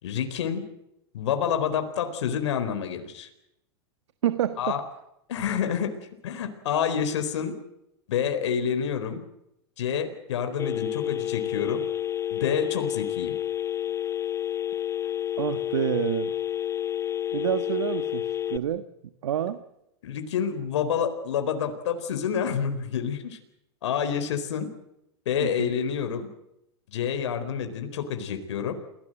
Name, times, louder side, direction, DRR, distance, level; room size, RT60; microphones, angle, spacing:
voice 1, 0.0-0.6 1.1-3.3 4.6-4.8 5.3-5.9 6.2-7.6 8.1-9.2 9.8-11.8 12.3-13.3 20.0-23.4 23.8-24.7 25.3-26.3 26.9-28.8, left 8 dB, 80° left, 7 dB, 4.3 m, -28 dB
voice 2, 4.2-4.8 15.4-16.4 17.3-18.8 19.2-19.6 25.4-25.7, right 10 dB, 85° right, 10 dB, 1.6 m, -28 dB
Telephone, 10.6-18.6, left 11 dB, 20° left, 1.2 m, -30 dB
29.0 x 19.0 x 7.8 m, 0.83 s
hypercardioid pair, 125°, 15 cm